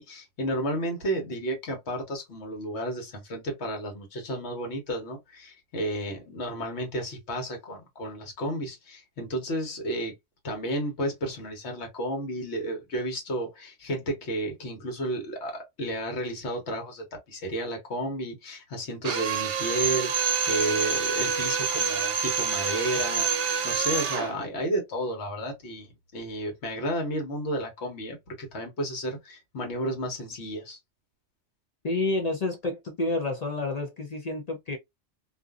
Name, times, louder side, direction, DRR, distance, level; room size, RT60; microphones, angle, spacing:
voice 1, 0.0-10.2 10.4-23.3 23.6-30.8, right 1 dB, 70° left, 1.3 m, -32 dB
Drill, 19.0-24.3, right 6 dB, 80° right, 0.9 m, -27 dB
voice 2, 31.8-34.8, left 2 dB, 50° left, 0.5 m, -29 dB
2.5 x 2.5 x 2.3 m
omnidirectional pair, 1.2 m